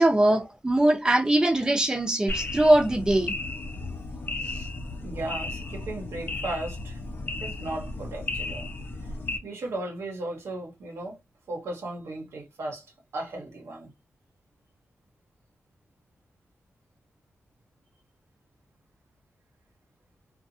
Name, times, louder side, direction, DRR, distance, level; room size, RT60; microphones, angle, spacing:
voice 1, 0.0-3.3, right 1 dB, 15° right, 0.6 m, -21 dB
sound 1, 2.3-9.4, left 2 dB, 50° left, 0.7 m, -34 dB
voice 2, 4.4-4.7 5.0-7.0 7.4-8.7 9.0-9.2 9.4-11.2 11.5-12.9 13.1-13.9, right 2 dB, 85° right, 0.9 m, -36 dB
2.6 x 2.3 x 2.6 m
wide cardioid pair, 100°, 5 cm